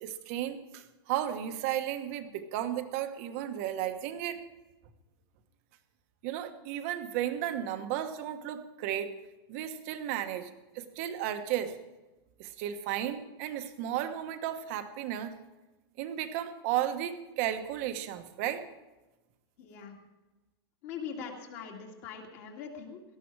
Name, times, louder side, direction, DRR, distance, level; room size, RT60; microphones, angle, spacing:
voice 1, 0.0-4.4 6.2-9.1 9.5-10.5 10.7-11.7 12.4-15.4 16.0-18.6, right 11 dB, 35° right, 8 dB, 1.2 m, -34 dB
voice 2, 19.6-19.9 20.8-23.0, left 6 dB, 35° left, 0 dB, 2.3 m, -42 dB
18.0 x 13.5 x 4.8 m, 1.1 s
supercardioid pair, 180°, 14 cm